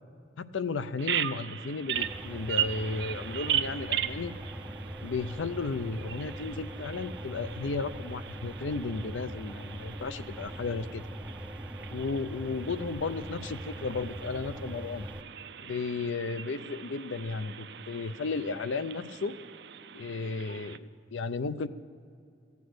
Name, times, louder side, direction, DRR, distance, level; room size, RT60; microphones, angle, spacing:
voice 1, 0.4-4.4 5.0-11.1 11.9-15.1 15.6-19.4 19.9-21.7, left 4 dB, 80° left, 13 dB, 0.5 m, -34 dB
Bird vocalization bird call bird song, 1.0-20.8, right 10 dB, 60° right, 0.5 m, -38 dB
sound 1, 1.9-15.2, right 1 dB, 5° right, 0.4 m, -41 dB
15.0 x 8.4 x 7.8 m, 2.4 s
head